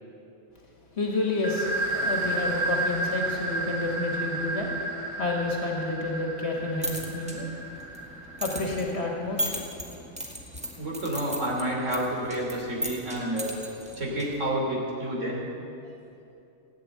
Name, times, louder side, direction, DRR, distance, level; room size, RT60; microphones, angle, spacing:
voice 1, 1.0-4.7 5.2-7.5 8.4-9.6, left 2 dB, 55° left, 0 dB, 2.0 m, -29 dB
sound 1, 1.4-8.9, right 2 dB, 25° right, 1.2 m, -32 dB
sound 2, 6.5-14.6, equal, 5° right, 1.8 m, -38 dB
voice 2, 10.8-13.5 14.0-15.5, right 1 dB, 75° right, -2 dB, 3.3 m, -29 dB
15.5 x 8.9 x 8.6 m, 2.7 s
omnidirectional pair, 1.3 m